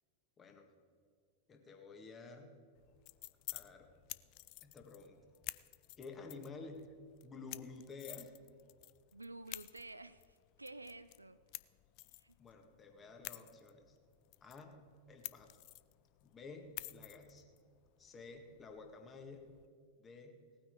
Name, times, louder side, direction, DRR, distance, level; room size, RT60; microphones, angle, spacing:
voice 1, 0.4-0.7 1.5-2.6 3.5-3.9 4.6-5.2 5.5-5.6 6.0-6.8 7.2-8.3 12.4-14.0 14.4-14.8 15.1-15.5 16.2-17.5 18.0-19.5 20.0-20.4, left 4 dB, 20° left, 4 dB, 1.8 m, -52 dB
sound 1, 2.8-19.7, left 21 dB, 45° left, 0.4 m, -52 dB
voice 2, 9.1-11.4 12.1-12.4, right 2 dB, 85° right, 14 dB, 0.3 m, -51 dB
18.0 x 9.3 x 4.7 m, 2.1 s
figure-of-eight pair, 90°, 0 cm